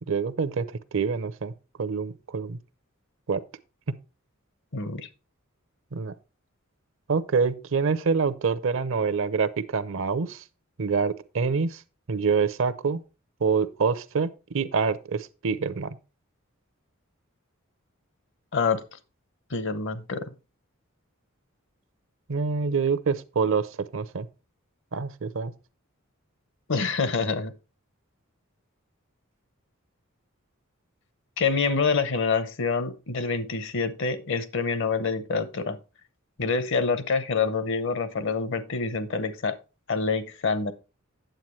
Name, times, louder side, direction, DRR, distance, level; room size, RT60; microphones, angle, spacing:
voice 1, 0.1-0.7 0.9-1.5 1.8-2.6 3.3-3.4 5.9-6.1 7.1-10.4 10.8-11.8 12.1-13.0 13.4-16.0 22.3-23.7 23.9-24.3 24.9-25.5, right 5 dB, 65° right, 0.6 m, -26 dB
voice 2, 4.7-5.1 18.5-18.8 19.5-20.3 26.7-27.5 31.4-35.8 36.4-39.6 39.9-40.7, left 4 dB, 60° left, 0.9 m, -26 dB
9.0 x 7.7 x 3.1 m
head